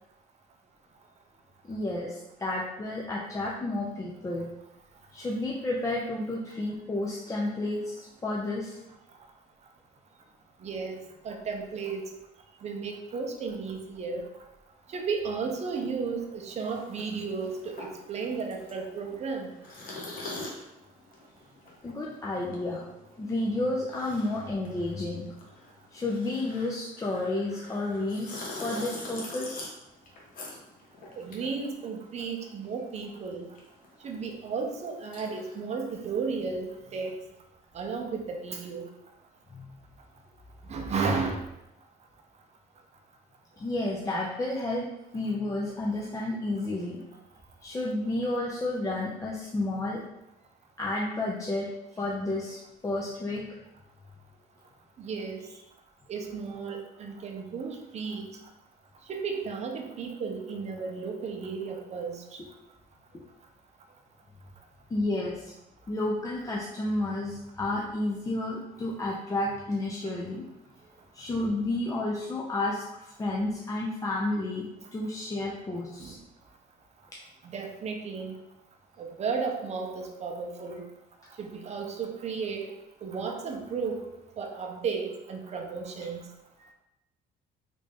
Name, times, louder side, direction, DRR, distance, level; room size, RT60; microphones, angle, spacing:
voice 1, 1.6-4.5 5.1-8.7 21.8-22.8 23.2-25.3 25.9-29.7 39.5-39.8 43.6-44.9 45.1-47.0 47.6-50.0 50.8-51.7 52.0-53.6 64.9-65.5 65.9-70.4 71.1-74.7 74.9-76.1, left 2 dB, 20° left, -4 dB, 0.5 m, -31 dB
voice 2, 10.6-11.0 11.2-12.1 12.6-14.3 14.9-19.5 31.2-33.5 34.0-37.1 37.7-38.9 40.7-41.4 55.0-55.4 56.1-58.3 59.1-62.4 76.0-76.2 77.4-78.4 79.0-80.8 81.4-82.7 83.0-84.1 84.4-86.2, right 5 dB, 40° right, 3 dB, 0.6 m, -34 dB
sound 1, 16.6-32.4 32.7-35.6, left 2 dB, 55° left, 0.9 m, -44 dB
3.2 x 2.6 x 3.4 m, 0.90 s
cardioid pair, 110°, 17 cm